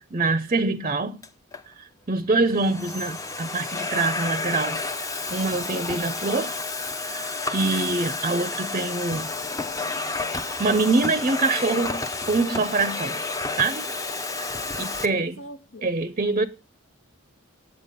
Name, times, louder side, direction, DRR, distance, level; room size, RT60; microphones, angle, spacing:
voice 1, 0.1-1.2 1.7-6.5 6.9-9.3 10.6-13.2 13.6-13.9 14.8-15.4 15.8-16.4, right 3 dB, 35° right, 0.6 m, -25 dB
Domestic sounds home sounds, 1.2-1.6 2.3-15.1, left 3 dB, 15° left, 0.7 m, -31 dB
voice 2, 14.3-16.0, left 1 dB, 65° left, 1.2 m, -46 dB
9.3 x 7.9 x 6.7 m
head